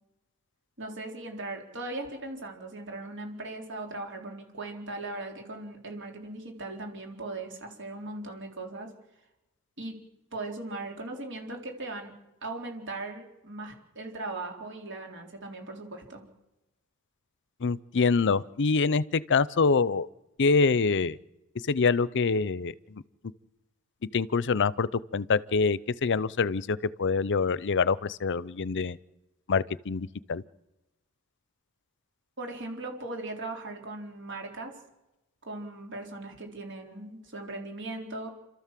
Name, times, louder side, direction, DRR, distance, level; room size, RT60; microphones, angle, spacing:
voice 1, 0.8-8.9 9.8-10.0 10.3-12.1 12.4-16.3 32.4-34.7 35.4-38.3, right 2 dB, 60° right, 3 dB, 4.0 m, -38 dB
voice 2, 17.6-20.1 20.4-21.2 21.7-23.0 24.1-29.0 29.5-30.4, left 4 dB, 55° left, 19 dB, 0.6 m, -25 dB
28.5 x 13.5 x 7.5 m, 0.99 s
head